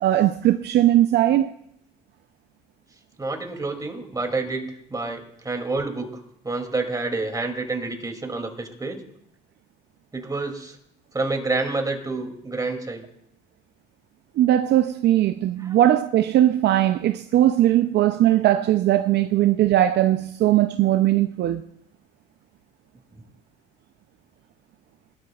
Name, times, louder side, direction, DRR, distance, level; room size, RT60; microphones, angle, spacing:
voice 1, 0.0-1.5 14.4-21.6, right 13 dB, 55° right, 0.6 m, -19 dB
voice 2, 3.2-9.0 10.1-10.8 11.1-13.0 15.6-15.8 23.2-23.3, right 3 dB, 15° right, 2.7 m, -28 dB
21.0 x 12.5 x 2.4 m
supercardioid pair, 80°, 21 cm